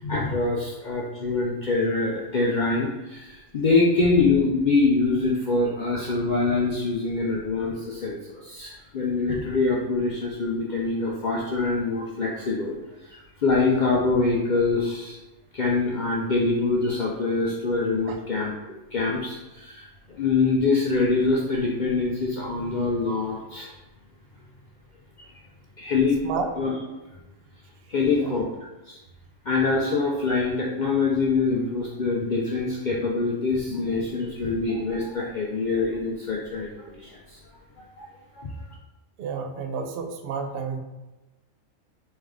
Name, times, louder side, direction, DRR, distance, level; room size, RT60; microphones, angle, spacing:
voice 1, 0.0-12.8 13.0-15.2 15.5-18.5 18.9-23.7 25.2-25.3 25.8-26.2 26.6-26.7 27.9-28.5 28.9-29.0 29.5-37.4 38.0-38.1 38.3-38.5, left 3 dB, 65° left, -3 dB, 0.4 m, -24 dB
voice 2, 28.1-28.4 39.2-40.8, right 5 dB, 65° right, 5 dB, 0.6 m, -31 dB
3.3 x 3.2 x 3.6 m, 1.1 s
omnidirectional pair, 1.4 m